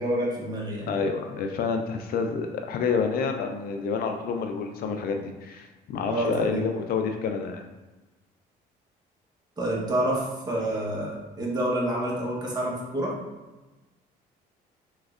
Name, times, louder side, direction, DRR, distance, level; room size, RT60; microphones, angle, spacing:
voice 1, 0.0-0.9 6.0-6.6 9.6-13.1, right 1 dB, 25° right, -4 dB, 1.1 m, -28 dB
voice 2, 0.9-7.6, left 5 dB, 60° left, 5 dB, 0.4 m, -28 dB
3.6 x 3.1 x 2.4 m, 1.1 s
cardioid pair, 110°, 17 cm